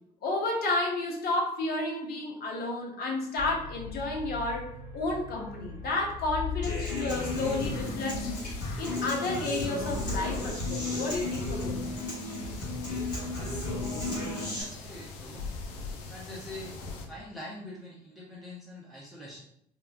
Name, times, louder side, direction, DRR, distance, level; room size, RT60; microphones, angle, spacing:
voice 1, 0.2-8.3 8.8-11.7, left 2 dB, 50° left, 0 dB, 0.9 m, -31 dB
sound 1, 3.4-10.1, left 6 dB, 30° left, 1.1 m, -40 dB
Human voice / Acoustic guitar, 6.6-14.6, left 2 dB, 90° left, 0.9 m, -34 dB
sound 2, 7.1-17.1, left 2 dB, 70° left, 0.5 m, -39 dB
voice 2, 14.3-15.5 16.1-16.7 17.1-19.4, left 1 dB, ahead, -7 dB, 0.8 m, -44 dB
2.8 x 2.2 x 2.6 m, 0.71 s
hypercardioid pair, 55°, 21 cm